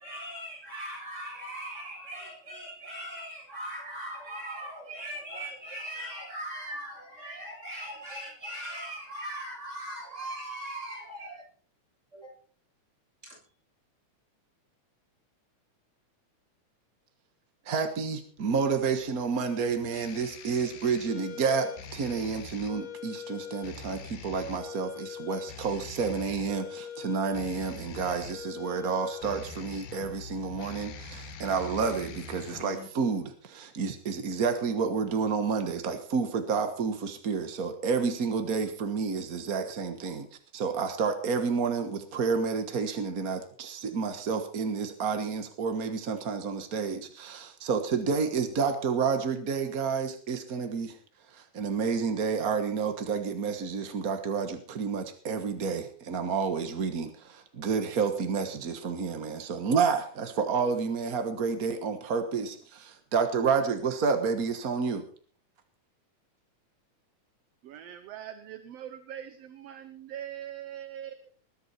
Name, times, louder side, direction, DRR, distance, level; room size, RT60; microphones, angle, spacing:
voice 1, 0.0-11.4 12.1-12.3 13.2-13.4, right 1 dB, 20° right, 7.9 m, -39 dB
voice 2, 17.6-40.3 40.5-51.0 51.3-65.0, right 5 dB, 50° right, 1.1 m, -30 dB
sound 1, 18.4-32.9, left 6 dB, 80° left, 3.1 m, -43 dB
voice 3, 67.6-71.3, right 10 dB, 65° right, 1.8 m, -42 dB
20.5 x 12.0 x 4.3 m
omnidirectional pair, 3.6 m